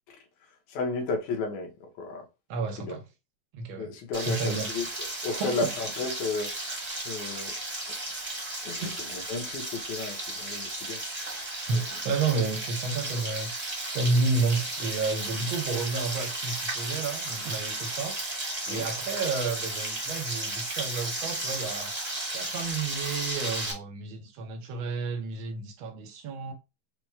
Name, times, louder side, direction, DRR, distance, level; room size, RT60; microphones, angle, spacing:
voice 1, 0.7-2.2 2.8-3.0 3.8-4.9 5.2-6.7 7.1-7.5 8.6-11.0 11.7-11.8 18.7-18.9, left 3 dB, 75° left, 2.4 m, -33 dB
voice 2, 2.5-3.0 3.5-3.9 4.2-4.7 5.3-5.7 8.8-9.1 11.7-13.5 13.9-21.9 22.3-26.5, right 4 dB, 75° right, 1.1 m, -31 dB
Frying (food), 4.1-23.7, right 1 dB, 25° right, 0.8 m, -34 dB
5.9 x 2.3 x 3.2 m
omnidirectional pair, 3.3 m